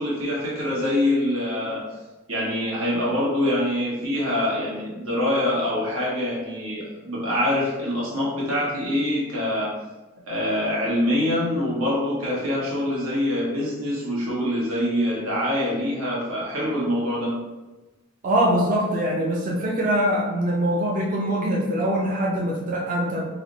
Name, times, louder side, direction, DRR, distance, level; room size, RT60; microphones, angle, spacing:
voice 1, 0.0-1.8 2.3-9.7 10.3-17.3, left 1 dB, 85° right, -5 dB, 1.2 m, -25 dB
voice 2, 18.2-23.2, equal, 40° right, -3 dB, 0.5 m, -23 dB
3.2 x 2.1 x 3.8 m, 1.1 s
head